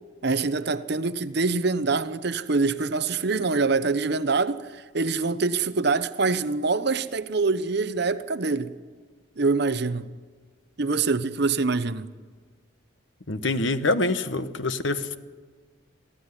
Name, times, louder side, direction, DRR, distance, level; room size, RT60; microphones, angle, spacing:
voice 1, 0.2-8.7 9.4-10.1 10.8-12.1, right 4 dB, 55° right, 0.8 m, -25 dB
voice 2, 13.3-15.2, left 2 dB, 70° left, 1.2 m, -25 dB
23.0 x 15.5 x 9.8 m
head